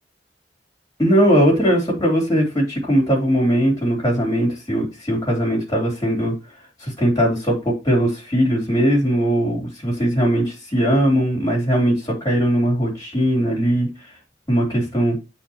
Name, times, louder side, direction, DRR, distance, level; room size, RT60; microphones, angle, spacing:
voice 1, 1.0-6.4 6.8-13.9 14.5-15.2, equal, 20° left, 3.2 m, -19 dB
8.5 x 4.6 x 3.0 m
head